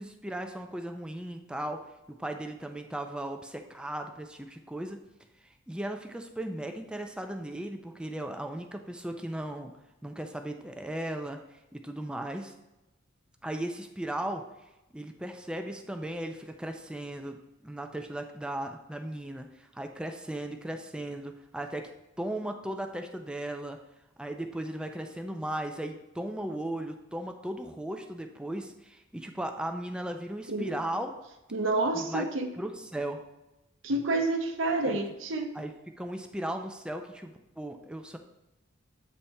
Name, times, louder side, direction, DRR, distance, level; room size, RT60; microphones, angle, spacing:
voice 1, 0.0-1.8 2.2-5.0 5.7-9.7 10.0-11.4 11.7-12.5 13.4-14.4 14.9-17.4 17.6-21.9 22.2-23.8 24.2-31.1 31.9-32.3 32.6-33.2 34.8-35.0 35.5-35.7 36.0-38.2, right 1 dB, 5° right, 5 dB, 0.4 m, -36 dB
voice 2, 31.5-32.5 33.8-35.5, right 2 dB, 70° right, 4 dB, 0.8 m, -29 dB
8.4 x 3.3 x 4.2 m, 0.97 s
head